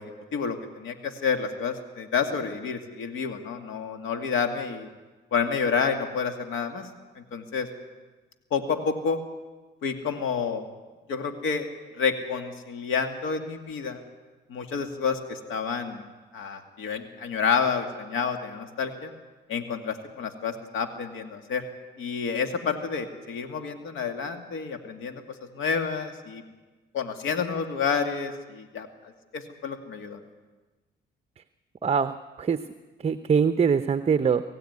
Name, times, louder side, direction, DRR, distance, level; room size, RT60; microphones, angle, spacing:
voice 1, 0.0-4.9 5.3-6.9 7.2-7.7 8.5-9.2 9.8-10.7 11.1-11.7 12.0-14.0 14.5-16.0 16.3-19.1 19.5-21.6 22.0-25.2 25.5-26.4 26.9-28.9 29.3-30.2, left 5 dB, 85° left, 6 dB, 2.3 m, -29 dB
voice 2, 31.8-32.7 33.0-34.4, right 6 dB, 30° right, 11 dB, 0.7 m, -23 dB
23.5 x 15.5 x 9.6 m, 1.3 s
cardioid pair, 90°, 20 cm